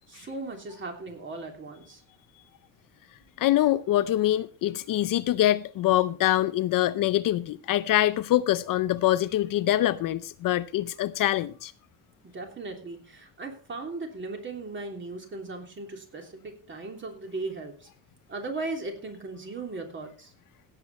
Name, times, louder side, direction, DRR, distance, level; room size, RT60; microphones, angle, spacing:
voice 1, 0.1-2.0 12.3-17.9 18.3-20.3, right 3 dB, 30° right, 3.1 m, -37 dB
voice 2, 3.4-11.7, left 14 dB, 55° left, 0.5 m, -24 dB
16.5 x 8.4 x 4.2 m
cardioid pair, 150°, 41 cm